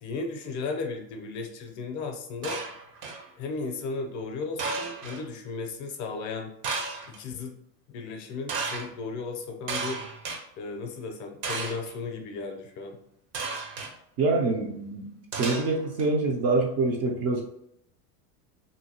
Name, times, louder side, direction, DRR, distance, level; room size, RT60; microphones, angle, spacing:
voice 1, 0.0-2.6 3.4-6.5 7.1-7.6 7.9-10.0 10.6-13.0, left 4 dB, 40° left, 3 dB, 0.5 m, -35 dB
sound 1, 2.4-3.3 4.6-5.2 6.6-7.2 8.5-8.9 9.7-10.4 11.4-11.9 13.3-13.9 15.3-16.0, right 4 dB, 55° right, 0.8 m, -33 dB
voice 2, 14.2-15.1 15.4-17.4, right 3 dB, 35° right, 1 dB, 0.4 m, -25 dB
2.8 x 2.7 x 2.7 m, 0.74 s
supercardioid pair, 110°, 48 cm